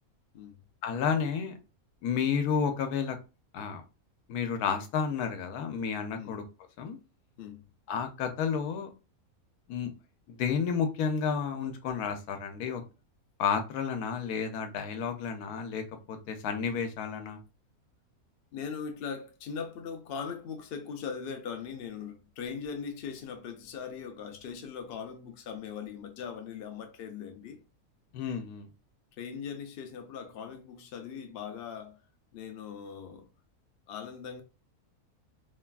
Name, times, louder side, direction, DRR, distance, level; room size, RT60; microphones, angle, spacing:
voice 1, 0.8-1.6 2.0-3.2 3.5-3.8 4.3-6.4 6.8-7.0 7.9-8.9 9.7-9.9 10.3-12.8 13.4-17.4 28.1-28.7, left 6 dB, 85° left, 1.1 m, -31 dB
voice 2, 7.4-7.7 18.5-27.6 29.2-32.0 32.3-33.3 33.9-34.4, left 6 dB, 65° left, 0.6 m, -40 dB
3.2 x 2.3 x 2.2 m
omnidirectional pair, 1.6 m